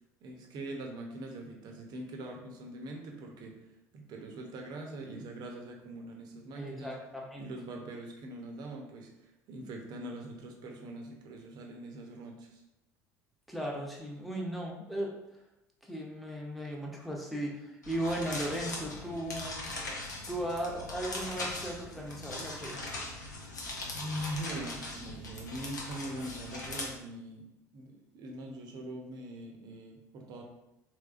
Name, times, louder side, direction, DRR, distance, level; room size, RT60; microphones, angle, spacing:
voice 1, 0.2-3.6 3.9-7.0 7.4-12.6 23.9-30.4, right 1 dB, 50° right, 2 dB, 0.7 m, -42 dB
voice 2, 6.6-7.5 13.5-15.1 15.8-19.7 20.3-23.0, right 1 dB, ahead, -2 dB, 0.8 m, -37 dB
sound 1, 17.8-26.9, left 2 dB, 85° left, 0.6 m, -40 dB
3.4 x 3.0 x 2.4 m, 0.90 s
figure-of-eight pair, 65°, 9 cm